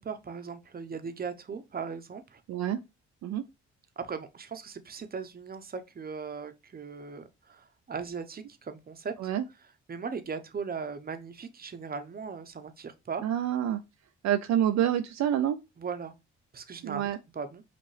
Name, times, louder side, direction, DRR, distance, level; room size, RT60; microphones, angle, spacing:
voice 1, 0.0-2.4 4.0-9.1 9.9-13.2 15.8-16.2 16.5-17.6, right 5 dB, 30° right, 0.8 m, -38 dB
voice 2, 2.5-2.8 3.2-3.4 9.2-9.4 13.2-13.8 14.2-15.6 16.8-17.2, right 10 dB, 65° right, 0.5 m, -27 dB
5.6 x 2.5 x 3.2 m
supercardioid pair, 60°, 29 cm